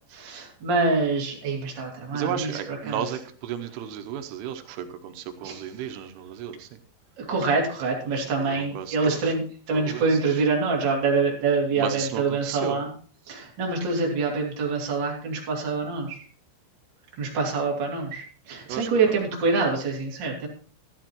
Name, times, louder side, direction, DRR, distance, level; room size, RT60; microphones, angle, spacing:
voice 1, 0.1-3.0 5.4-5.6 7.2-12.9 13.3-16.2 17.2-20.5, right 4 dB, 30° right, -2 dB, 2.3 m, -25 dB
voice 2, 2.1-6.8 8.0-9.3 9.7-10.4 11.7-12.8 18.7-19.2, right 9 dB, 85° right, 7 dB, 3.4 m, -34 dB
13.5 x 11.0 x 3.0 m, 0.43 s
omnidirectional pair, 5.6 m